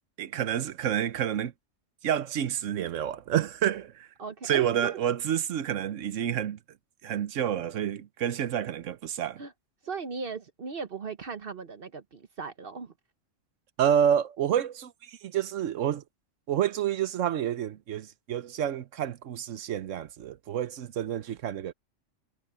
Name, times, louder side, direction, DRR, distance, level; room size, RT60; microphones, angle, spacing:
voice 1, 0.2-1.5 2.0-4.1 4.4-6.6 7.0-9.4 13.8-16.0 16.5-21.7, right 9 dB, 85° right, 1.2 m, -29 dB
voice 2, 4.2-5.0 9.4-9.5 9.8-12.9, right 5 dB, 50° right, 1.1 m, -38 dB
omnidirectional pair, 1.3 m